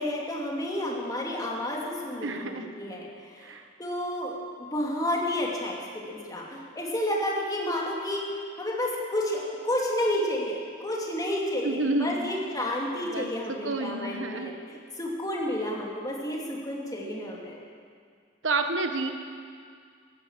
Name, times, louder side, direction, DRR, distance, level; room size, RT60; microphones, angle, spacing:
voice 1, 0.0-3.5 3.8-4.4 4.7-17.6, left 1 dB, 20° left, -3 dB, 2.7 m, -31 dB
voice 2, 2.2-2.7 3.4-3.7 11.6-12.2 13.0-14.5 18.4-19.1, right 2 dB, 85° right, 6 dB, 1.3 m, -29 dB
15.5 x 11.5 x 7.5 m, 2.1 s
head